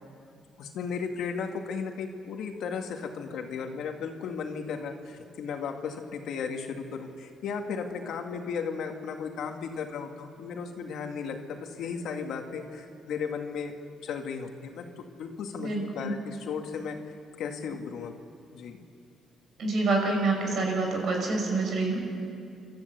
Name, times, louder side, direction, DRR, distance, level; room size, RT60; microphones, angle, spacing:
voice 1, 0.6-13.7 14.0-14.9 15.2-17.0 17.4-18.1 18.5-18.8, left 6 dB, 75° left, 4 dB, 2.1 m, -35 dB
voice 2, 15.6-16.1 19.6-22.0, right 3 dB, 65° right, 1 dB, 5.4 m, -27 dB
29.5 x 13.5 x 8.4 m, 2.5 s
cardioid pair, 90°, 0 cm